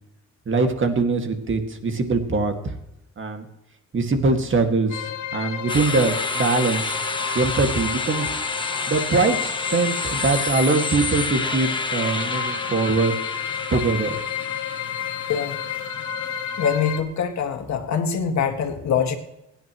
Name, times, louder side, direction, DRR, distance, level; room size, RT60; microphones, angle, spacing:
voice 1, 0.5-2.5 3.2-3.5 3.9-6.9 7.3-8.4 8.9-13.2 13.7-14.2, right 3 dB, 40° right, 5 dB, 2.1 m, -22 dB
sound 1, 4.9-17.0, left 9 dB, 85° left, 1.4 m, -31 dB
sound 2, 5.7-16.7, left 3 dB, 15° left, 1.2 m, -30 dB
voice 2, 16.6-19.2, left 7 dB, 65° left, 5 dB, 2.1 m, -24 dB
23.5 x 10.0 x 3.1 m, 0.87 s
cardioid pair, 90°, 30 cm